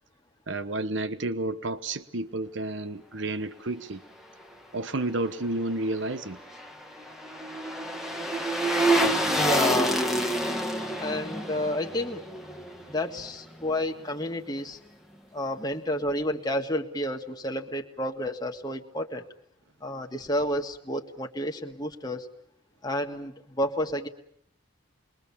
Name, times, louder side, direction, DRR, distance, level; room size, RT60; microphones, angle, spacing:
voice 1, 0.5-4.0 4.7-6.4, right 2 dB, 60° right, 13 dB, 1.1 m, -31 dB
sound 1, 6.1-13.3 13.6-13.7, right 1 dB, ahead, 1.6 m, -28 dB
voice 2, 9.4-10.0 11.0-12.2 12.9-14.8 15.3-19.3 19.8-22.3 22.8-24.1, left 1 dB, 20° left, 3 dB, 1.8 m, -30 dB
29.0 x 22.5 x 7.2 m, 0.67 s
head